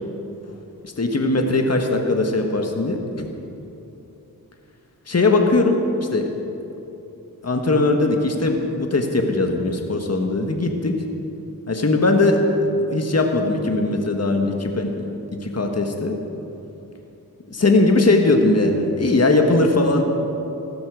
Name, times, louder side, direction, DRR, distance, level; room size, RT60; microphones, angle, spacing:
voice 1, 0.8-3.3 5.1-6.3 7.4-11.0 11.7-12.4 12.9-15.2 15.4-16.1 17.5-20.0, left 2 dB, 45° left, 3 dB, 1.6 m, -20 dB
15.5 x 12.0 x 6.4 m, 2.9 s
cardioid pair, 50°, 36 cm